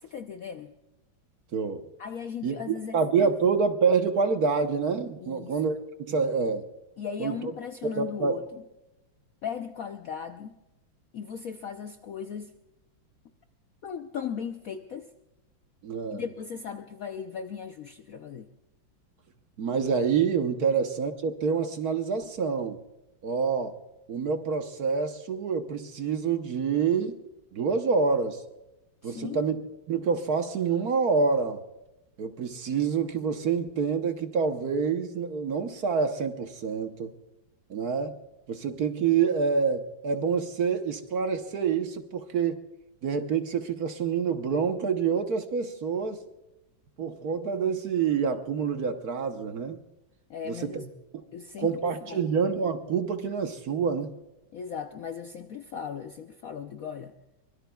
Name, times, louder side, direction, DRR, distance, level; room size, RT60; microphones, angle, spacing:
voice 1, 0.0-0.7 2.0-3.3 5.2-5.6 7.0-8.4 9.4-10.6 11.1-12.6 13.8-15.1 16.1-18.5 20.6-20.7 29.0-29.4 50.3-50.9 51.3-52.3 54.5-57.2, left 7 dB, 65° left, 7 dB, 0.8 m, -37 dB
voice 2, 1.5-1.8 2.4-6.7 7.2-7.5 7.8-8.4 15.8-16.2 19.6-22.8 23.2-23.8 24.1-27.2 27.5-28.4 29.0-29.6 29.9-31.6 32.2-37.1 37.7-38.2 38.5-42.6 43.0-46.2 47.0-49.8 50.4-50.9 51.6-54.1, right 5 dB, 55° right, 7 dB, 1.3 m, -27 dB
24.0 x 21.5 x 2.3 m, 0.97 s
omnidirectional pair, 2.2 m